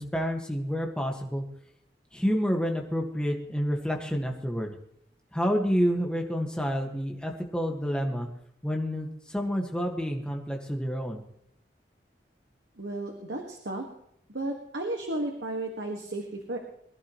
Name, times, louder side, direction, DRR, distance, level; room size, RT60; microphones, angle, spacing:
voice 1, 0.0-1.4 2.1-4.7 5.3-8.3 8.6-11.2, equal, 5° left, 1 dB, 1.7 m, -29 dB
voice 2, 12.8-13.9 14.3-16.6, right 2 dB, 85° right, 2 dB, 1.8 m, -33 dB
22.0 x 11.5 x 3.1 m, 0.72 s
head